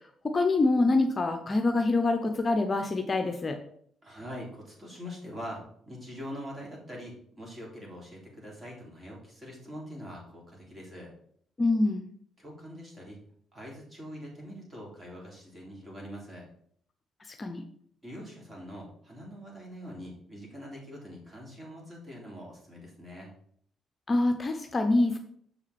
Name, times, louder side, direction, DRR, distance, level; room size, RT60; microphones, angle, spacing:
voice 1, 0.3-3.6 11.6-12.1 17.3-17.6 24.1-25.2, left 2 dB, 30° left, 5 dB, 0.8 m, -25 dB
voice 2, 4.0-5.6 5.9-11.1 12.4-13.2 13.5-16.5 18.0-23.3, equal, 25° right, -3 dB, 3.5 m, -43 dB
6.8 x 5.9 x 4.3 m, 0.63 s
cardioid pair, 90°, 0 cm